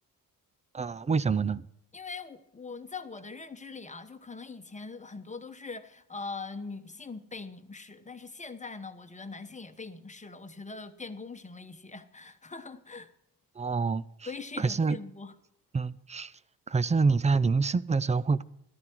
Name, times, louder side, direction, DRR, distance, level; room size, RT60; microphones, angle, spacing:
voice 1, 0.7-1.6 13.6-14.0 14.6-15.0 15.7-16.3 16.7-18.4, right 4 dB, 20° right, 0.4 m, -26 dB
voice 2, 1.9-13.1 14.3-15.3, left 4 dB, 20° left, 1.0 m, -42 dB
13.5 x 12.5 x 4.6 m
cardioid pair, 105°, 40 cm